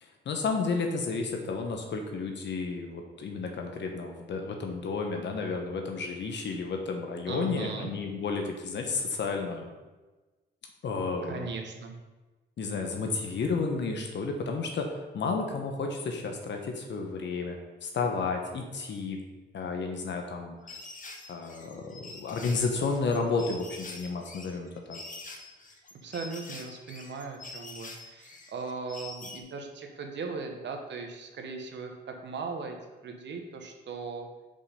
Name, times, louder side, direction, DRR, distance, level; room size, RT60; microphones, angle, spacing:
voice 1, 0.0-9.7 10.8-11.5 12.6-19.2 19.5-20.8 21.3-25.0, left 4 dB, 70° left, 3 dB, 1.0 m, -32 dB
voice 2, 7.3-7.9 11.2-11.9 26.0-32.8 33.0-34.3, right 4 dB, 70° right, 3 dB, 1.1 m, -38 dB
sound 1, 20.7-29.4, left 3 dB, 45° left, 1.2 m, -45 dB
5.4 x 5.1 x 5.5 m, 1.2 s
cardioid pair, 75°, 19 cm